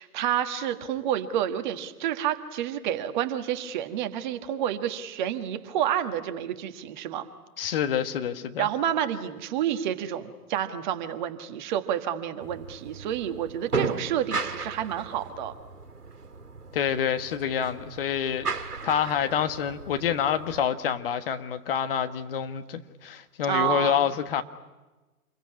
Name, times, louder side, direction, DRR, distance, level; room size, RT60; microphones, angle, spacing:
voice 1, 0.0-7.3 7.6-7.8 8.6-15.5 23.5-24.1, right 10 dB, 30° right, 8 dB, 1.6 m, -29 dB
voice 2, 7.6-8.7 16.7-18.5 18.8-24.4, left 8 dB, 40° left, 9 dB, 1.4 m, -27 dB
sound 1, 12.4-20.7, right 4 dB, 85° right, 2.1 m, -36 dB
27.5 x 21.5 x 9.8 m, 1.2 s
figure-of-eight pair, 130°, 45 cm